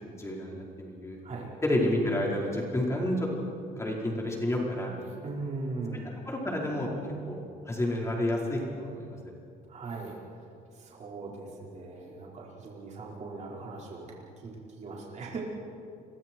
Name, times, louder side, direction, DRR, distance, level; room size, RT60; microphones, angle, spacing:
voice 1, 0.0-1.2 1.6-3.3 3.8-5.0 6.3-6.9 7.3-7.4 7.7-9.2, left 1 dB, 15° left, -2 dB, 4.7 m, -30 dB
voice 2, 5.2-6.1 9.7-10.4 10.7-15.4, right 3 dB, 45° right, -3 dB, 5.1 m, -39 dB
30.0 x 23.5 x 4.7 m, 2.5 s
cardioid pair, 110°, 17 cm